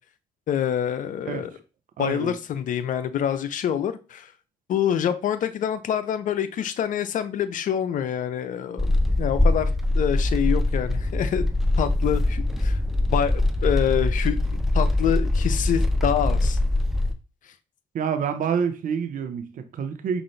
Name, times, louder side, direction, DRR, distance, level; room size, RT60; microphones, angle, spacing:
voice 1, 0.5-1.5 2.0-4.3 4.7-11.5 11.8-12.8 13.1-14.4 14.7-16.6, left 9 dB, 60° left, 0.5 m, -26 dB
voice 2, 2.0-2.3 17.9-20.2, right 7 dB, 65° right, 0.7 m, -27 dB
sound 1, 8.8-17.1, left 2 dB, ahead, 0.7 m, -23 dB
5.2 x 2.5 x 3.2 m
hypercardioid pair, 40°, 15 cm